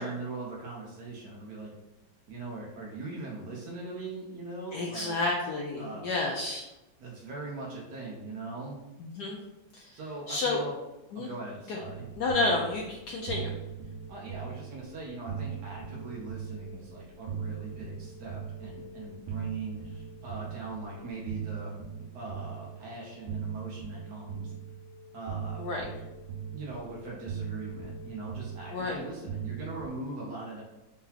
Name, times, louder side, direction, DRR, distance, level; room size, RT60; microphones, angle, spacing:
voice 1, 0.0-1.7 2.3-5.2 5.8-6.1 7.0-8.8 9.9-10.7 11.1-12.1 14.1-21.7 22.0-24.5 25.1-25.7 26.5-30.6, right 3 dB, 60° right, -4 dB, 1.2 m, -41 dB
voice 2, 4.7-6.7 9.0-9.4 9.7-10.0 10.3-10.6 11.1-11.3 11.7-11.8 12.2-13.5 25.6-25.9 28.7-29.0, left 2 dB, 70° left, 0 dB, 1.0 m, -30 dB
sound 1, 11.8-29.9, right 7 dB, 75° right, 1.6 m, -40 dB
4.6 x 3.7 x 2.8 m, 1.0 s
omnidirectional pair, 2.2 m